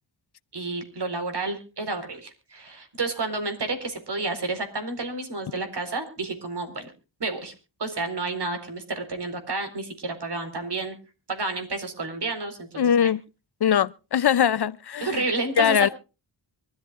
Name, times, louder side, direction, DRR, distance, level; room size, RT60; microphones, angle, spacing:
voice 1, 0.5-6.9 7.2-7.5 7.8-11.0 11.3-13.1 15.0-15.9, right 3 dB, 60° right, 4.5 m, -30 dB
voice 2, 12.8-13.2 13.6-15.2 15.6-15.9, left 8 dB, 55° left, 0.6 m, -21 dB
24.5 x 13.5 x 2.5 m
wide cardioid pair, 100°, 47 cm